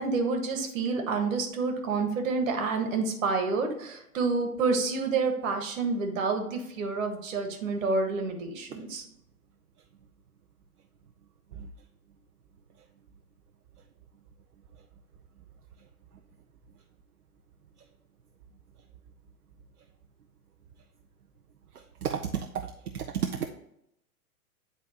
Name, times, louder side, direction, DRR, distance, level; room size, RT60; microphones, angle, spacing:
voice 1, 0.0-9.0, right 4 dB, 60° right, 5 dB, 1.6 m, -28 dB
voice 2, 22.0-22.5 22.9-23.5, right 8 dB, 80° right, 4 dB, 0.7 m, -30 dB
9.6 x 4.0 x 2.9 m, 0.79 s
figure-of-eight pair, 100°, 45 cm